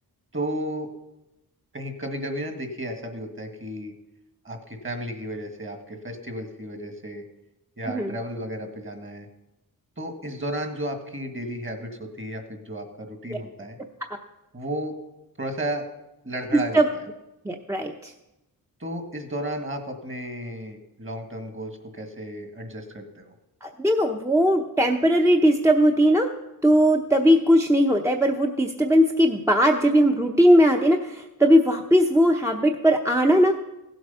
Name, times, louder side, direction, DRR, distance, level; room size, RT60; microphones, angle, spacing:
voice 1, 0.3-0.9 1.7-3.9 4.4-7.2 7.8-9.3 10.0-13.8 14.5-15.0 15.4-15.9 16.2-17.0 18.8-23.3, right 1 dB, 35° right, 5 dB, 1.9 m, -33 dB
voice 2, 17.4-18.1 23.6-26.3 26.6-33.5, equal, 10° right, 2 dB, 0.7 m, -19 dB
16.0 x 7.9 x 5.6 m, 0.94 s
wide cardioid pair, 100°, 37 cm